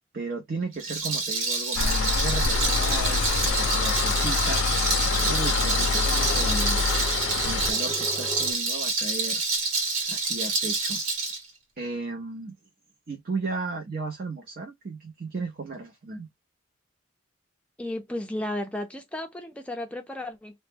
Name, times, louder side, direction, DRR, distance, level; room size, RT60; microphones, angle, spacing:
voice 1, 0.1-6.8 7.4-9.4 10.1-11.0 11.8-12.5 13.1-16.3, right 3 dB, 45° right, 0.6 m, -35 dB
Rattle, 0.7-11.4, right 3 dB, 85° right, 1.0 m, -27 dB
sound 1, 1.8-7.7, left 5 dB, 70° left, 0.4 m, -26 dB
Engine, 2.5-8.5, equal, 15° right, 0.9 m, -39 dB
voice 2, 17.8-20.6, left 1 dB, 5° left, 0.4 m, -34 dB
2.1 x 2.1 x 3.2 m
head